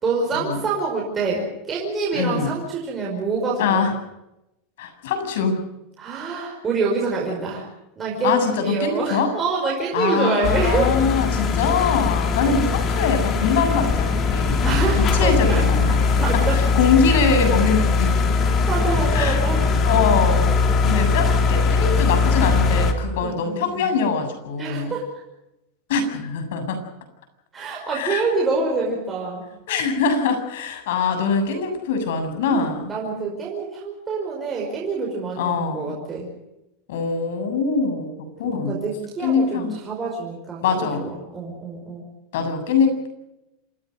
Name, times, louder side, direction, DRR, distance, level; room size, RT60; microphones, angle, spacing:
voice 1, 0.0-3.9 6.0-7.7 8.0-11.0 14.6-16.6 18.7-19.7 23.2-23.9 24.6-25.1 27.5-29.4 32.5-36.3 38.4-42.1, right 4 dB, 15° right, -3 dB, 5.2 m, -26 dB
voice 2, 2.1-2.5 3.6-3.9 4.8-5.6 8.2-9.3 9.9-15.9 16.5-18.2 19.1-19.4 19.9-20.6 20.9-24.9 25.9-26.8 27.9-28.3 29.7-32.9 35.4-36.0 36.9-38.1 38.4-38.8 39.2-39.7 40.6-41.1 42.3-43.1, left 5 dB, 75° left, 7 dB, 7.6 m, -23 dB
sound 1, 10.4-22.9, left 4 dB, 25° left, 2.8 m, -20 dB
27.5 x 16.5 x 8.0 m, 0.89 s
supercardioid pair, 175°, 0 cm